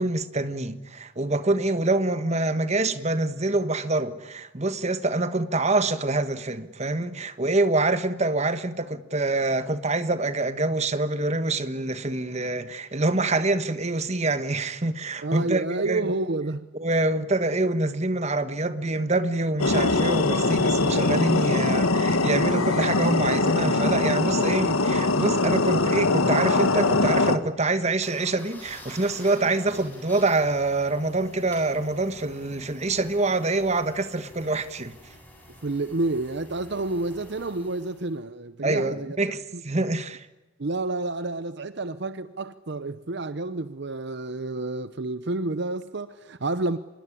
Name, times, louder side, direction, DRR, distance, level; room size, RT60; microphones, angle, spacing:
voice 1, 0.0-16.1 16.7-34.9 38.6-40.3, right 2 dB, 30° right, 1.3 m, -26 dB
voice 2, 15.2-16.7 35.6-39.2 39.5-39.6 40.6-46.8, right 2 dB, 55° right, 0.8 m, -29 dB
sound 1, 19.6-27.4, left 2 dB, 85° left, 1.7 m, -22 dB
sound 2, 28.0-38.2, left 1 dB, 10° left, 7.4 m, -48 dB
25.5 x 21.0 x 10.0 m
head